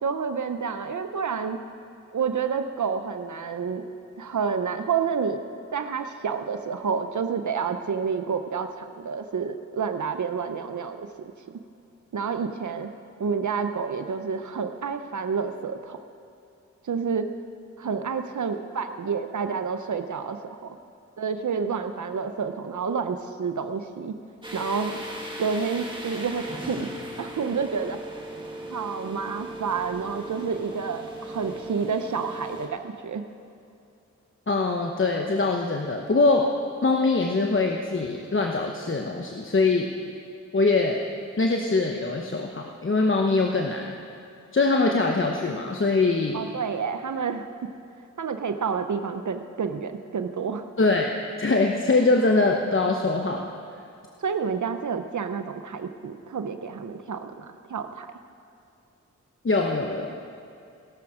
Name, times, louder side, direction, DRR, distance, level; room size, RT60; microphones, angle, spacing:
voice 1, 0.0-1.6 2.1-3.8 4.2-5.4 5.7-11.3 12.1-12.9 13.2-16.0 16.8-17.3 17.8-20.4 20.6-20.8 21.2-24.2 24.5-25.0 25.4-26.9 27.2-28.0 28.7-33.2 46.3-47.5 48.2-50.6 54.2-58.1, right 6 dB, 70° right, 8 dB, 0.8 m, -29 dB
sound 1, 24.4-32.7, right 1 dB, 15° right, 2.2 m, -37 dB
voice 2, 34.5-36.5 36.8-39.9 40.5-41.0 41.4-43.8 44.5-46.4 50.8-51.1 51.4-53.5 59.4-60.2, left 3 dB, 40° left, 2 dB, 1.0 m, -23 dB
17.5 x 12.0 x 5.0 m, 2.6 s
wide cardioid pair, 60°, 31 cm